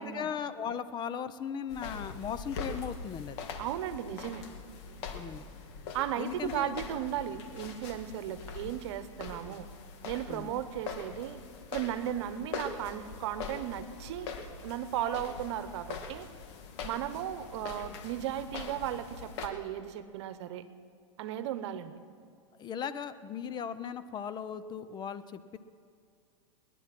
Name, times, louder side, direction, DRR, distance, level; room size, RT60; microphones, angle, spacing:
voice 1, 0.0-3.4 5.1-5.4 6.1-6.7 10.3-10.5 22.6-25.6, left 7 dB, 30° left, 13 dB, 0.7 m, -37 dB
sound 1, 1.7-19.5, left 5 dB, 60° left, 1.8 m, -43 dB
voice 2, 3.6-4.5 5.9-9.7 10.0-11.4 11.7-14.3 14.6-16.3 16.8-20.6 21.2-21.9, right 11 dB, 65° right, 12 dB, 1.0 m, -35 dB
20.5 x 10.5 x 6.1 m, 2.4 s
hypercardioid pair, 115°, 16 cm